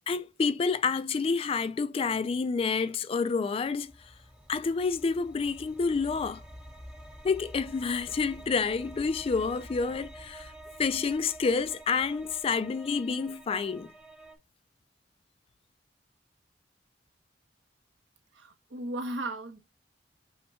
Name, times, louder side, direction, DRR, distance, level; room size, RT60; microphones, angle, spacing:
voice 1, 0.1-3.9 4.5-6.4 7.2-10.5 10.8-13.9, left 5 dB, 30° left, 0.3 m, -28 dB
sound 1, 3.7-14.4, right 1 dB, 5° right, 1.0 m, -48 dB
voice 2, 18.3-19.6, right 1 dB, 80° right, 1.0 m, -36 dB
5.6 x 2.2 x 4.2 m
head